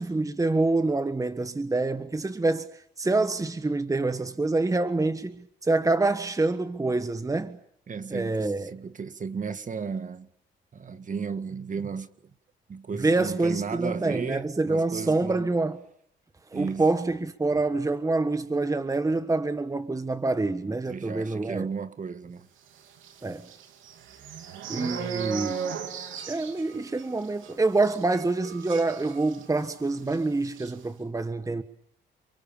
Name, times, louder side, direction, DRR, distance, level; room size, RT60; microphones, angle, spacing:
voice 1, 0.0-2.7 3.0-7.6 8.1-8.7 13.0-15.8 16.5-21.7 23.2-23.5 24.7-25.7 26.3-31.6, right 3 dB, 15° right, 1.4 m, -26 dB
voice 2, 7.9-10.3 10.7-12.3 12.7-15.5 16.5-16.9 20.9-22.5 24.9-25.2, right 5 dB, 40° right, 1.8 m, -34 dB
sound 1, 23.0-29.7 30.0-30.2 30.4-30.7, right 7 dB, 85° right, 3.2 m, -37 dB
29.0 x 23.5 x 7.2 m
cardioid pair, 90°, 20 cm